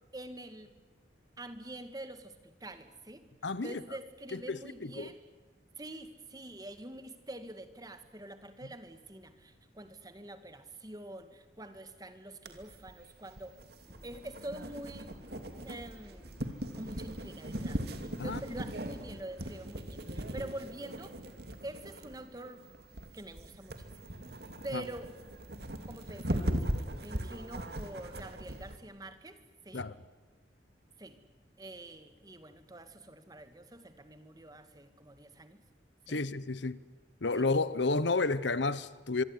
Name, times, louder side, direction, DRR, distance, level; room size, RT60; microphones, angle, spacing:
voice 1, 0.1-0.7 1.4-3.2 3.6-5.3 5.8-13.5 14.0-15.1 15.6-16.4 16.7-17.8 18.1-21.1 21.6-22.6 23.1-23.9 24.6-25.1 25.9-29.4 29.7-29.9 31.0-31.2 31.6-35.6 36.1-36.3 37.4-37.5, right 1 dB, 20° right, 1.9 m, -46 dB
voice 2, 3.4-3.8 4.3-5.1 18.2-18.4 24.7-24.8 29.7-29.9 36.1-36.8 37.2-39.2, left 3 dB, 75° left, 1.0 m, -31 dB
sound 1, 12.5-28.8, right 1 dB, 60° right, 2.7 m, -39 dB
sound 2, 13.8-19.8, equal, 10° left, 6.7 m, -56 dB
25.0 x 24.0 x 9.7 m
head